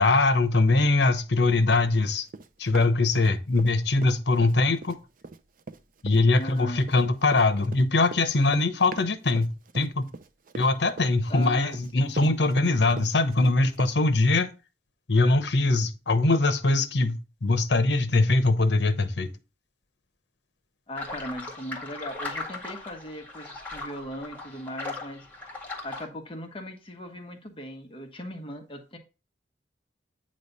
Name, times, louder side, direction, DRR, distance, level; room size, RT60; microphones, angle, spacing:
voice 1, 0.0-2.3 2.6-5.0 6.0-9.5 9.7-10.1 10.5-14.5 15.1-19.3, left 2 dB, 75° left, 0.9 m, -22 dB
Run, 2.3-3.7 4.0-13.9, right 3 dB, 50° right, 0.5 m, -41 dB
voice 2, 6.4-6.9 11.3-12.3 20.9-25.3 25.8-29.0, left 1 dB, 30° left, 1.2 m, -38 dB
sound 1, 20.9-26.1, left 3 dB, 10° left, 1.8 m, -38 dB
9.0 x 3.2 x 5.4 m
head